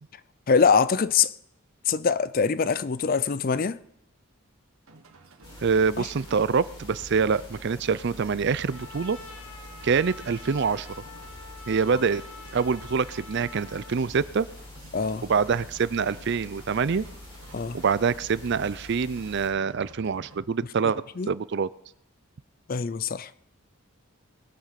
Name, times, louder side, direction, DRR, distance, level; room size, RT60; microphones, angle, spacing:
voice 1, 0.5-1.3 1.9-3.8 6.0-6.1 14.9-15.3 17.5-17.8 21.2-21.3 22.7-23.3, left 5 dB, 40° left, 0.4 m, -23 dB
sound 1, 4.9-20.4, right 2 dB, 70° right, 1.6 m, -51 dB
sound 2, 5.4-19.5, left 1 dB, 20° left, 4.3 m, -46 dB
voice 2, 5.6-9.2 9.8-10.9 11.7-12.2 12.5-14.5 15.3-17.1 17.7-21.7, right 5 dB, 50° right, 0.4 m, -25 dB
Trumpet, 8.7-14.0, left 3 dB, 90° left, 1.6 m, -46 dB
21.0 x 8.6 x 5.8 m
head